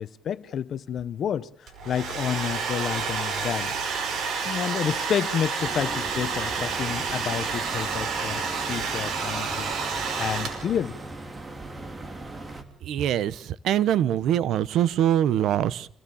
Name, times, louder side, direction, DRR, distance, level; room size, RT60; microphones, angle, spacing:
voice 1, 0.0-3.8 4.4-11.0, left 9 dB, 65° left, 1.1 m, -30 dB
Domestic sounds home sounds, 1.7-10.9, right 5 dB, 70° right, 5.2 m, -29 dB
sound 1, 5.6-12.6, right 2 dB, 25° right, 3.0 m, -39 dB
voice 2, 12.9-13.4 13.6-15.9, right 11 dB, 85° right, 0.9 m, -23 dB
27.0 x 17.0 x 7.1 m
cardioid pair, 105°, 0 cm